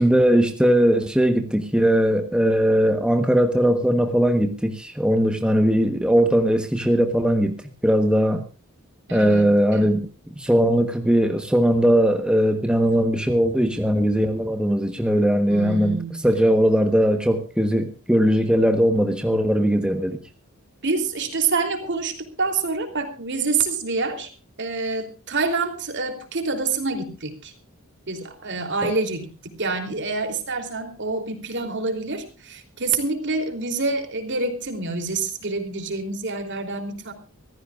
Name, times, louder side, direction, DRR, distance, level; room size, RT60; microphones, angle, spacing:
voice 1, 0.0-7.5 7.8-8.4 9.1-10.0 10.4-16.0 16.2-20.2 28.8-28.9, equal, 5° right, 1.2 m, -19 dB
voice 2, 9.1-9.9 15.5-16.2 20.8-24.3 24.6-27.5 28.1-29.3 29.6-37.1, right 3 dB, 55° right, 3.3 m, -27 dB
25.5 x 15.5 x 2.5 m
head